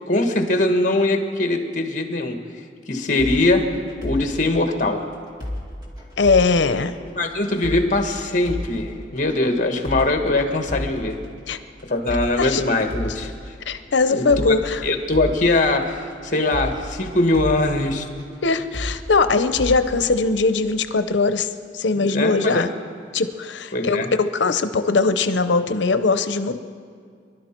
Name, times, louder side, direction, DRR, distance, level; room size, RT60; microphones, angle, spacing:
voice 1, 0.1-2.4 2.9-3.7 4.0-5.1 7.1-11.1 11.9-13.5 14.1-14.5 14.8-18.0 21.9-22.7 23.7-24.1, left 2 dB, 45° left, 5 dB, 1.5 m, -21 dB
sound 1, 3.2-20.9, left 1 dB, 25° right, 2.2 m, -34 dB
voice 2, 6.2-6.9 11.5-11.6 12.4-12.6 13.7-14.8 18.4-22.7 23.1-26.6, left 4 dB, 85° left, 11 dB, 0.7 m, -20 dB
24.0 x 12.0 x 4.5 m, 2.2 s
head